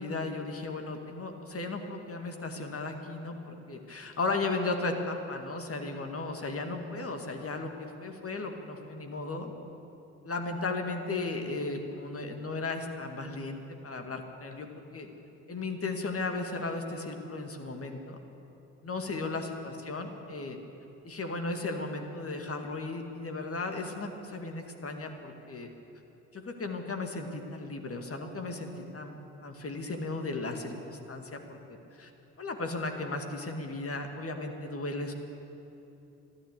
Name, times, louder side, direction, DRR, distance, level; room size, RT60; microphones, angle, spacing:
voice 1, 0.0-9.5 10.2-14.7 14.9-15.1 15.5-18.2 18.8-20.6 21.0-25.7 26.3-32.1 32.4-35.1, left 3 dB, 35° left, 4 dB, 2.1 m, -35 dB
12.5 x 12.0 x 8.4 m, 3.0 s
hypercardioid pair, 45°, 39 cm